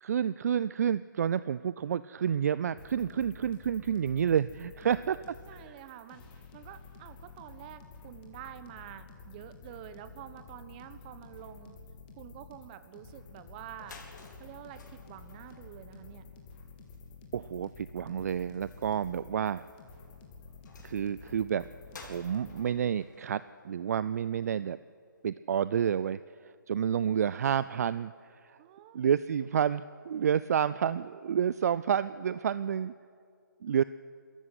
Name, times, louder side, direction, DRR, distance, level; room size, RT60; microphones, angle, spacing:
voice 1, 0.0-5.4 5.7-5.8 17.3-19.6 20.8-21.7 22.0-24.8 25.2-28.6 28.9-32.9 33.6-33.8, right 8 dB, 50° right, 16 dB, 0.4 m, -29 dB
sound 1, 2.7-22.6, left 4 dB, 30° left, 3.0 m, -51 dB
voice 2, 5.5-11.8 12.2-14.0 14.4-16.3 28.6-29.0 33.7-33.8, right 11 dB, 25° right, 12 dB, 1.2 m, -48 dB
sound 2, 13.7-24.5, left 3 dB, 65° left, 4.3 m, -56 dB
22.5 x 14.0 x 9.9 m, 2.3 s
hypercardioid pair, 150°, 11 cm